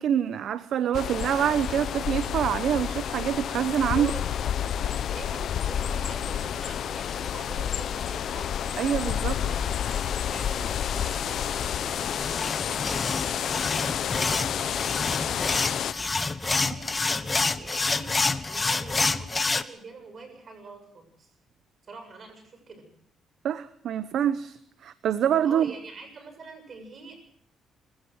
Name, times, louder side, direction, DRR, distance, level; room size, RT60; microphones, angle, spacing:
voice 1, 0.0-4.1 8.8-9.4 23.4-25.7, right 9 dB, 70° right, 13 dB, 1.0 m, -26 dB
sound 1, 0.9-15.9, left 9 dB, 65° left, 0.9 m, -29 dB
voice 2, 3.9-8.7 9.4-15.9 16.4-21.3 21.9-22.9 25.4-27.2, right 4 dB, 45° right, 7 dB, 7.5 m, -45 dB
sound 2, 12.0-19.6, left 3 dB, 25° left, 1.2 m, -28 dB
26.0 x 16.5 x 6.4 m, 0.66 s
cardioid pair, 90°, 0 cm